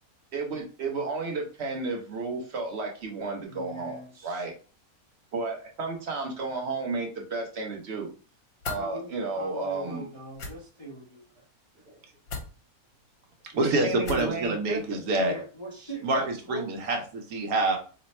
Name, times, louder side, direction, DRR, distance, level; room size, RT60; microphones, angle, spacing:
voice 1, 0.3-4.5 5.3-8.1 8.6-10.1 13.6-15.0, right 3 dB, 50° right, 1 dB, 1.0 m, -32 dB
voice 2, 3.5-4.4 8.7-11.4 15.3-16.7, right 2 dB, 25° left, -5 dB, 0.6 m, -40 dB
sound 1, 8.6-8.8 10.3-10.5 12.3-12.5 14.0-14.3, left 3 dB, 70° left, 1.4 m, -35 dB
voice 3, 13.5-15.3 16.0-17.8, right 2 dB, 75° right, 3 dB, 1.3 m, -26 dB
3.3 x 2.1 x 4.2 m, 0.37 s
omnidirectional pair, 1.6 m